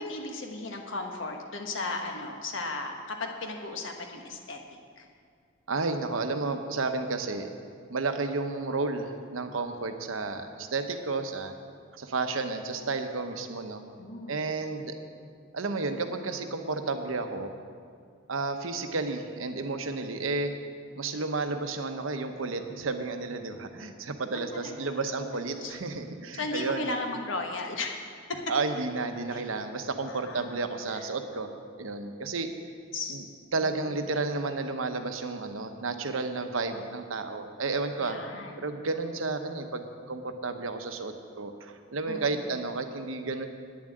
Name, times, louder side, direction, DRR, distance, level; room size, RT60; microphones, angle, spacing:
voice 1, 0.0-4.6 5.0-5.1 14.0-14.6 24.3-24.9 25.6-25.8 26.4-28.0 29.3-29.4 30.1-31.0 32.9-33.2 33.6-33.9 38.0-38.7 42.1-42.5, left 2 dB, 70° left, 3 dB, 1.4 m, -36 dB
voice 2, 5.7-7.5 7.9-11.5 11.9-13.8 14.3-15.0 15.5-17.5 18.3-20.5 20.9-26.9 28.5-32.5 33.1-33.2 33.5-38.2 38.6-43.5, right 3 dB, 80° right, 7 dB, 0.9 m, -32 dB
9.5 x 7.4 x 8.9 m, 2.2 s
head